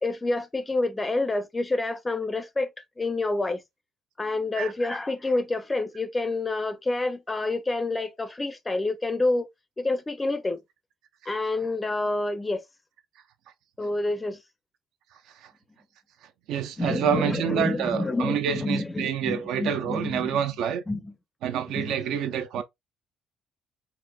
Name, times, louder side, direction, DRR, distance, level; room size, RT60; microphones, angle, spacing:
voice 1, 0.0-2.7 3.0-3.6 4.2-9.5 9.8-10.6 11.3-12.6 13.8-14.4 16.8-20.4 20.9-21.1 21.7-21.9, left 2 dB, 15° left, 0.4 m, -28 dB
voice 2, 16.5-20.8 21.4-22.6, right 8 dB, 75° right, 0.6 m, -27 dB
4.3 x 2.5 x 2.2 m
cardioid pair, 145°, 0 cm